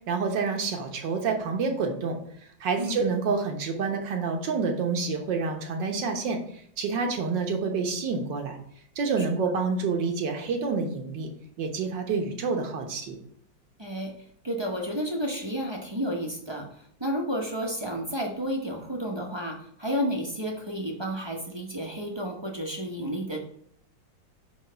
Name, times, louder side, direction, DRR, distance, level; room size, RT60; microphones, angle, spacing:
voice 1, 0.1-2.2 2.6-8.6 9.0-11.3 11.6-13.2, right 4 dB, 70° right, 4 dB, 1.8 m, -28 dB
voice 2, 13.8-14.1 14.4-23.4, equal, 20° right, 0 dB, 0.7 m, -31 dB
9.0 x 3.2 x 5.6 m, 0.65 s
omnidirectional pair, 2.0 m